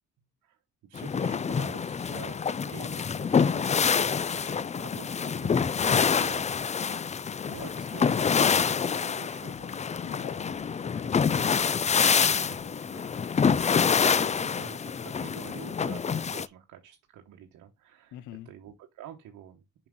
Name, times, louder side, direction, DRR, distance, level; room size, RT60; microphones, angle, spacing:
voice 1, 0.9-5.7 5.9-6.5 7.5-9.5 12.2-13.1 13.8-19.9, right 10 dB, 80° right, 1.2 m, -48 dB
sound 1, 1.0-16.5, left 6 dB, 25° left, 0.4 m, -26 dB
voice 2, 5.9-6.2 7.6-7.7 10.1-11.1 11.9-12.4 18.1-18.5, left 14 dB, 75° left, 0.6 m, -45 dB
sound 2, 6.4-14.4, left 8 dB, 50° left, 0.9 m, -51 dB
5.9 x 5.9 x 3.7 m
cardioid pair, 90°, 30 cm